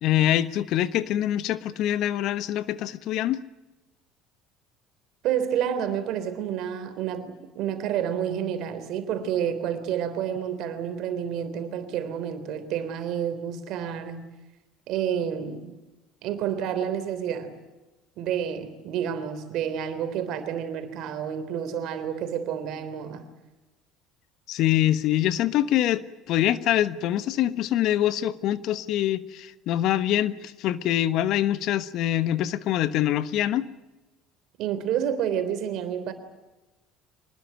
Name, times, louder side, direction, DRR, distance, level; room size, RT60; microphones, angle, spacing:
voice 1, 0.0-3.4 24.5-33.7, left 12 dB, 65° left, 14 dB, 1.2 m, -24 dB
voice 2, 5.2-14.3 14.9-15.8 16.2-17.5 18.2-23.3 34.6-36.1, right 9 dB, 65° right, 10 dB, 3.5 m, -29 dB
25.5 x 20.5 x 9.2 m, 1.1 s
hypercardioid pair, 70°, 0 cm